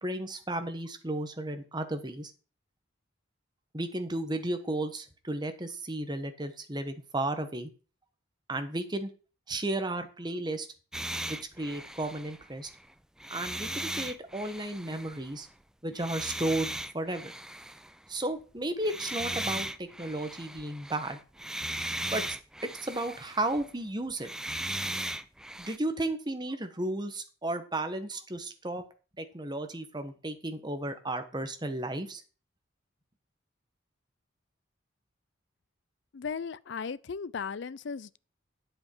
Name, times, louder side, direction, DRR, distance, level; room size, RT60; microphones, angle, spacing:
voice 1, 0.0-2.3 3.7-7.7 8.5-9.1 9.5-10.7 11.3-12.7 13.3-15.5 15.8-17.3 18.1-21.2 22.1-22.2 22.6-24.3 25.6-28.8 29.2-32.2, right 1 dB, 20° right, 1.2 m, -34 dB
sound 1, 10.9-12.8 13.2-15.3 16.0-17.9 18.8-23.7 24.1-25.8, right 1 dB, 5° right, 0.4 m, -37 dB
voice 2, 36.1-38.2, left 5 dB, 60° left, 0.5 m, -36 dB
9.2 x 8.0 x 4.5 m
head